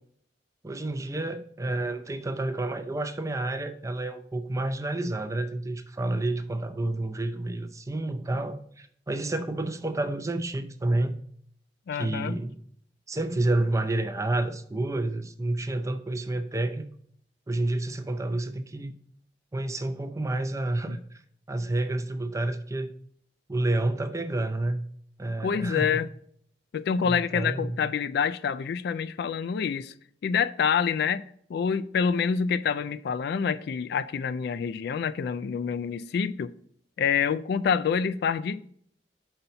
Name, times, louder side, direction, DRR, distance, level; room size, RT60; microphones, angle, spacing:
voice 1, 0.6-11.2 11.9-12.5 13.1-16.9 17.5-18.9 19.5-21.0 21.5-22.9 23.5-24.8 25.2-26.0 27.0-27.8, right 2 dB, 20° right, 0.5 m, -29 dB
voice 2, 11.9-12.4 20.9-21.0 25.4-26.1 26.7-29.9 30.2-31.2 31.5-36.5 37.0-38.7, left 6 dB, 65° left, 0.3 m, -27 dB
5.6 x 3.9 x 5.6 m
head